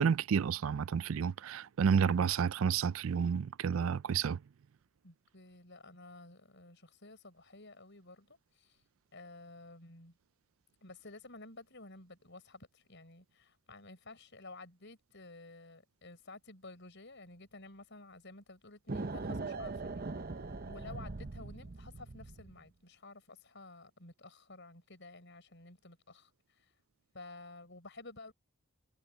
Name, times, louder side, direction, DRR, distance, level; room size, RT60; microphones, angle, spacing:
voice 1, 0.0-4.4, right 6 dB, 70° right, 0.4 m, -30 dB
voice 2, 5.0-8.8 9.1-10.1 10.8-20.1 20.7-26.3 27.1-28.3, left 2 dB, 55° left, 6.7 m, -52 dB
sound 1, 18.9-22.6, right 3 dB, 45° right, 0.7 m, -41 dB
head